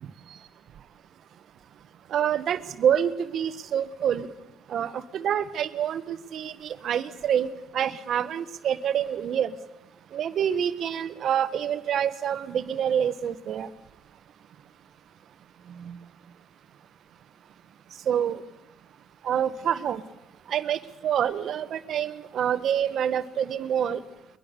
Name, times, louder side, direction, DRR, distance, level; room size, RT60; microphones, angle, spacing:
voice 1, 2.1-4.3 4.7-9.5 10.1-13.7 15.8-16.0 18.1-18.4 19.2-20.0 20.5-24.0, right 9 dB, 60° right, 12 dB, 1.4 m, -27 dB
23.0 x 22.5 x 6.9 m, 0.95 s
cardioid pair, 105°, 0 cm